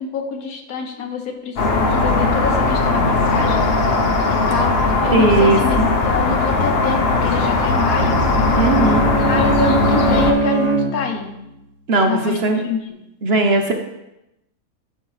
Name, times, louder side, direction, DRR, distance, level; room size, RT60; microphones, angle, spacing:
voice 1, 0.0-1.6 1.9-3.7 4.3-8.2 9.2-11.4 12.0-12.9, left 5 dB, 80° left, 4 dB, 1.4 m, -26 dB
sound 1, 1.6-10.3, left 3 dB, 50° left, 0.9 m, -18 dB
voice 2, 5.1-5.9 8.6-9.1 11.9-12.6 13.2-13.7, right 3 dB, 50° right, 4 dB, 0.9 m, -17 dB
Bowed string instrument, 7.8-11.4, right 2 dB, 30° right, 1.4 m, -22 dB
11.5 x 5.5 x 3.2 m, 0.90 s
omnidirectional pair, 1.5 m